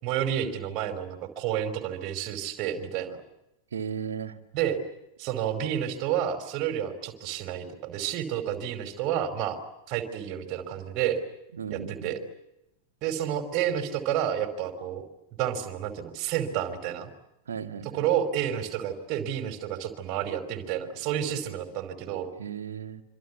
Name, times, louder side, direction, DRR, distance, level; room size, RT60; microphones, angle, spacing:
voice 1, 0.0-3.2 4.5-4.8 5.2-9.6 9.9-11.2 11.7-12.2 13.0-15.0 15.4-17.1 17.8-22.3, right 10 dB, 40° right, 6 dB, 5.0 m, -30 dB
voice 2, 3.7-4.4 11.6-12.1 17.5-17.9 22.4-23.0, right 7 dB, 65° right, 6 dB, 2.1 m, -35 dB
26.5 x 26.0 x 8.4 m, 0.88 s
figure-of-eight pair, 90°, 0 cm